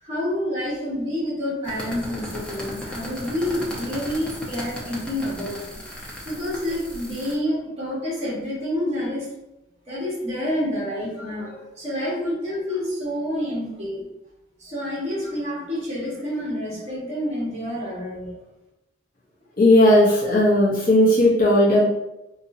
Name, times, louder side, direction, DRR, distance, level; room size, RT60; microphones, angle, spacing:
voice 1, 0.0-5.8 6.2-9.3 9.9-14.0 14.6-18.4, left 1 dB, 35° right, -6 dB, 1.5 m, -28 dB
sound 1, 1.6-7.3, equal, 5° left, 0.7 m, -36 dB
voice 2, 19.6-21.9, left 1 dB, 45° left, -7 dB, 0.7 m, -16 dB
3.9 x 2.7 x 2.7 m, 0.93 s
head